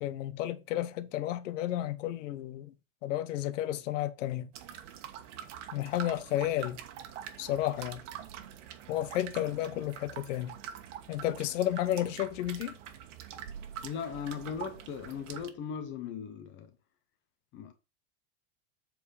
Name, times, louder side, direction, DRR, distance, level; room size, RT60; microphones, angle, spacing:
voice 1, 0.0-2.7 3.0-4.5 5.7-6.8 7.4-8.0 8.9-10.5 11.1-12.7, left 13 dB, 90° left, 1.1 m, -32 dB
sound 1, 4.5-15.5, right 9 dB, 80° right, 1.4 m, -45 dB
voice 2, 13.8-16.7 17.5-17.7, left 7 dB, 30° left, 1.0 m, -38 dB
8.0 x 4.4 x 5.5 m
supercardioid pair, 170°, 36 cm